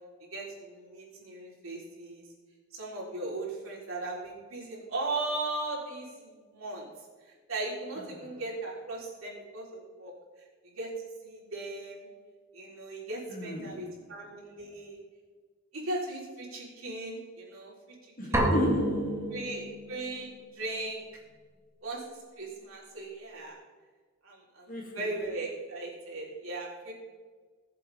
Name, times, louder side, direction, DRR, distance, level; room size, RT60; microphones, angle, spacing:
voice 1, 0.2-2.2 2.7-6.9 7.5-10.1 10.6-10.9 11.2-12.1 12.5-15.0 15.7-17.7 18.0-18.5 19.3-21.0 21.8-22.0 22.4-23.6 24.2-26.9, right 2 dB, 75° right, 3.7 m, -38 dB
voice 2, 8.0-8.4 13.3-14.2 18.2-19.5 24.7-25.2, equal, 40° left, 2.4 m, -35 dB
sound 1, 18.3-20.1, equal, 15° right, 1.7 m, -29 dB
20.0 x 7.6 x 3.5 m
head